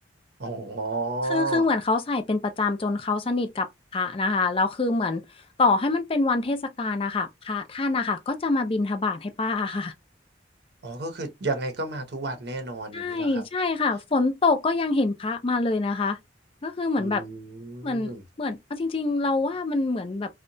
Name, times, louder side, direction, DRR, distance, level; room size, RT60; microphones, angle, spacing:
voice 1, 0.4-1.7 10.8-13.4 17.0-18.2, right 3 dB, 60° right, 0.7 m, -32 dB
voice 2, 1.3-5.2 5.6-9.9 12.9-16.2 16.6-17.2 17.8-18.1 18.4-20.3, left 3 dB, 30° left, 0.4 m, -25 dB
2.8 x 2.1 x 2.5 m
head